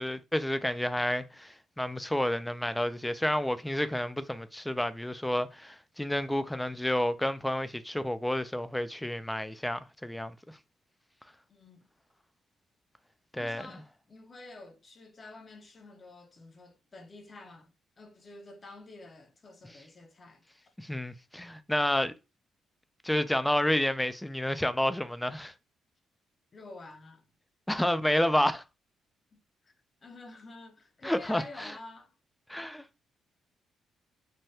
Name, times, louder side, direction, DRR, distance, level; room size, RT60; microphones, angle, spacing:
voice 1, 0.0-10.6 13.3-13.7 20.8-22.1 23.0-25.5 27.7-28.6 31.0-31.8 32.5-33.0, left 1 dB, 5° left, 0.3 m, -30 dB
voice 2, 11.5-11.9 13.3-17.7 18.0-20.7 21.1-21.2 26.5-27.2 29.3-29.7 30.0-32.1, left 2 dB, 35° left, 0.7 m, -49 dB
3.3 x 2.2 x 2.7 m
cardioid pair, 90°, 0 cm